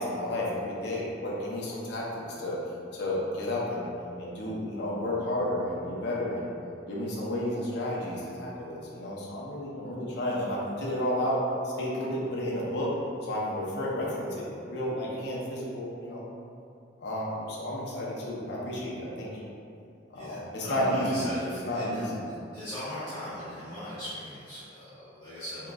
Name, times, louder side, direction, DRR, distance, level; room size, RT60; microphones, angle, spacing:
voice 1, 0.0-2.6 2.9-3.9 4.2-6.5 6.9-12.9 13.2-16.2 17.0-19.3 20.1-21.3 21.6-22.3, left 1 dB, 65° left, -6 dB, 0.6 m, -31 dB
voice 2, 20.1-22.1 22.5-25.7, left 1 dB, 20° left, -15 dB, 1.0 m, -39 dB
3.6 x 2.9 x 2.3 m, 2.6 s
head